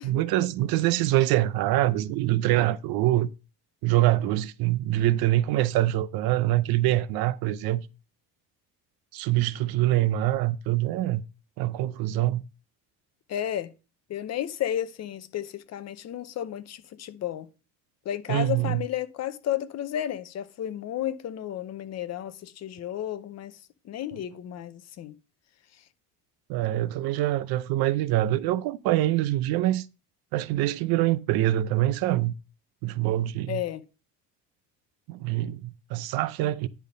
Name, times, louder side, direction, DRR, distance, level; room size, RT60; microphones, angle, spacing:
voice 1, 0.0-3.3 3.8-7.9 9.1-11.2 11.6-12.4 18.3-18.8 26.5-29.9 30.3-32.3 32.8-33.6 35.1-36.7, right 15 dB, 75° right, 0.7 m, -24 dB
voice 2, 13.3-13.7 14.1-17.5 18.0-23.6 23.8-25.1 33.5-33.8, left 11 dB, 45° left, 0.7 m, -32 dB
10.5 x 3.5 x 5.2 m
cardioid pair, 135°, 36 cm